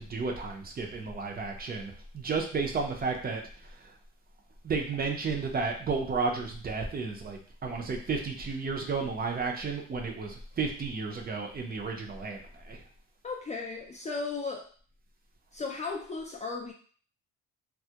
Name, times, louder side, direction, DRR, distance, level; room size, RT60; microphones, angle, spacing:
voice 1, 0.0-3.4 4.6-12.8, right 4 dB, 30° right, 1 dB, 0.5 m, -32 dB
voice 2, 13.2-14.7 15.5-16.7, left 4 dB, 25° left, 0 dB, 0.3 m, -35 dB
2.3 x 2.0 x 2.7 m, 0.44 s
cardioid pair, 90°, 30 cm